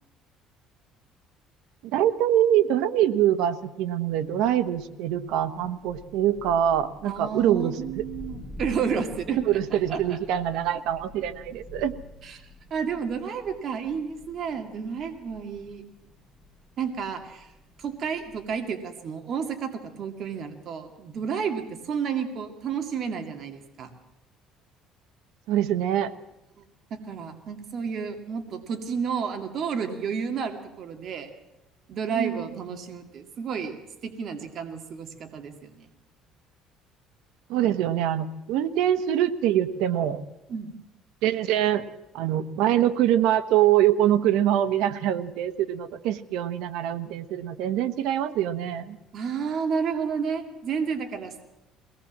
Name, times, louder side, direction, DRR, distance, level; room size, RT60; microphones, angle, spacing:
voice 1, 1.9-8.0 9.4-11.9 25.5-26.1 32.1-32.5 37.5-40.2 41.2-41.8 42.1-49.0, right 11 dB, 80° right, 12 dB, 1.2 m, -24 dB
Thunder, 4.2-18.7, left 1 dB, 10° right, 7.0 m, -48 dB
voice 2, 7.0-9.4 9.7-10.0 10.3-10.4 12.2-12.4 12.7-15.8 16.8-17.5 17.8-23.9 26.9-31.3 31.9-33.8 34.0-35.9 38.6-38.7 40.5-40.7 49.1-51.4, right 6 dB, 50° right, 5 dB, 2.3 m, -31 dB
22.5 x 18.5 x 7.4 m, 0.94 s
cardioid pair, 130°, 0 cm